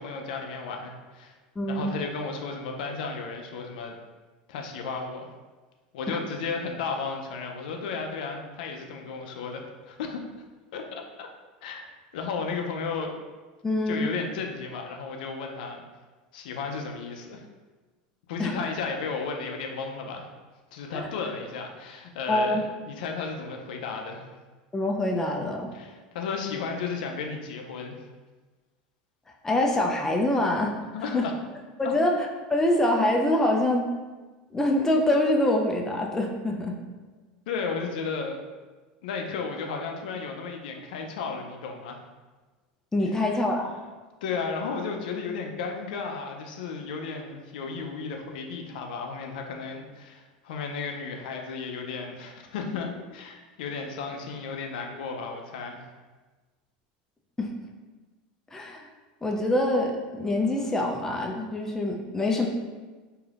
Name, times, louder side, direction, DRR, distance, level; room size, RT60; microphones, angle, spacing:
voice 1, 0.0-1.4 1.7-3.9 4.5-5.3 5.9-10.2 10.7-11.3 11.6-11.8 12.1-13.1 13.9-15.8 16.3-17.5 18.3-20.3 20.7-24.3 25.7-28.0 30.9-31.3 31.8-32.0 37.5-38.4 39.0-42.0 43.0-43.2 44.2-55.9, left 5 dB, 75° left, 3 dB, 0.4 m, -34 dB
voice 2, 1.6-1.9 6.1-6.2 13.6-14.1 18.4-18.5 22.3-22.6 24.7-25.7 29.4-30.7 31.1-31.3 31.8-33.8 34.5-36.7 42.9-43.7 57.4-57.5 58.5-58.8 59.2-62.5, left 1 dB, 10° left, 0 dB, 0.4 m, -25 dB
3.2 x 2.7 x 2.4 m, 1.3 s
hypercardioid pair, 100°, 5 cm